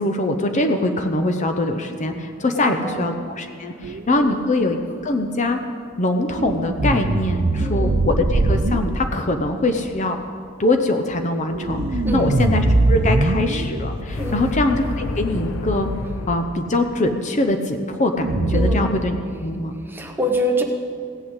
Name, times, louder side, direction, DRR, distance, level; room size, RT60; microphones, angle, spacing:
voice 1, 0.0-4.8 5.0-5.6 6.0-10.2 10.6-15.9 16.3-19.1 19.4-19.7, left 2 dB, 35° left, 6 dB, 0.7 m, -22 dB
voice 2, 2.5-3.1 3.7-4.4 7.5-8.0 12.0-12.4 14.2-14.6 18.5-19.0 19.8-20.6, equal, 10° right, 2 dB, 1.1 m, -26 dB
sound 1, 3.8-4.2 6.3-8.8 11.4-13.9 18.2-18.8, right 2 dB, 50° right, 0.6 m, -21 dB
sound 2, 11.7-16.7, left 2 dB, 70° left, 0.7 m, -29 dB
17.0 x 6.1 x 8.1 m, 2.3 s
head